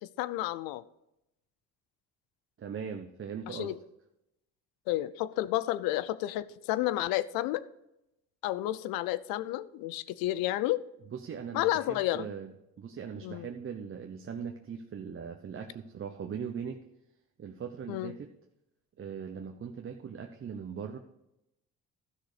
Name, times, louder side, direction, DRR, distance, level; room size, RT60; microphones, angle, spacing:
voice 1, 0.0-0.8 3.5-3.8 4.9-7.6 8.4-10.8 11.5-12.3 13.2-13.5 17.9-18.1, left 15 dB, 85° left, 0.6 m, -31 dB
voice 2, 2.6-3.7 11.1-12.5 12.8-16.8 17.4-18.3 19.0-21.0, right 7 dB, 40° right, 0.9 m, -40 dB
13.0 x 6.5 x 5.0 m
supercardioid pair, 80°, 34 cm